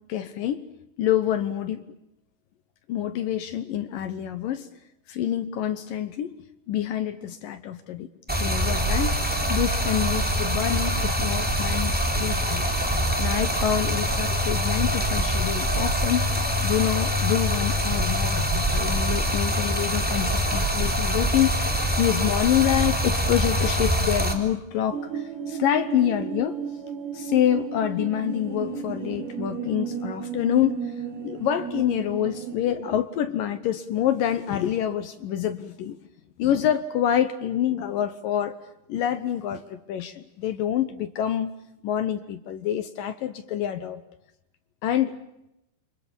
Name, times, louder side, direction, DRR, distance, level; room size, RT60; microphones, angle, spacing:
voice 1, 0.1-0.7 1.0-1.9 2.9-4.7 5.1-6.4 6.7-9.1 9.5-12.7 13.2-26.6 27.1-30.8 31.2-36.0 36.4-38.6 38.9-41.5 41.8-44.0 44.8-45.2, left 11 dB, 75° left, 10 dB, 2.0 m, -27 dB
Stream, 8.3-24.3, equal, ahead, 2.7 m, -24 dB
sound 1, 24.9-32.6, right 7 dB, 65° right, 4.6 m, -34 dB
29.5 x 26.0 x 7.2 m, 0.85 s
omnidirectional pair, 5.5 m